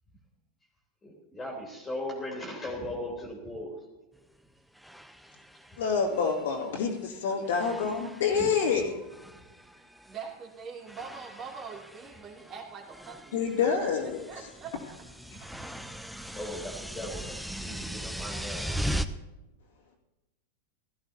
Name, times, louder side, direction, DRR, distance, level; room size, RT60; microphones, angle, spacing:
voice 1, 1.0-3.7 8.3-9.0 10.1-10.2 12.0-12.2 15.5-15.8 16.3-18.7, left 1 dB, 15° left, 0 dB, 2.7 m, -39 dB
sound 1, 4.2-4.3 4.8-7.2 7.5-8.8 9.0-10.2 10.9-19.1, equal, ahead, 0.6 m, -39 dB
voice 2, 5.8-8.9 13.3-14.2, left 6 dB, 65° left, -2 dB, 2.3 m, -27 dB
voice 3, 10.1-13.5 13.8-15.1, right 6 dB, 35° right, 0 dB, 2.8 m, -43 dB
17.0 x 13.5 x 2.8 m, 1.0 s
figure-of-eight pair, 90°, 0 cm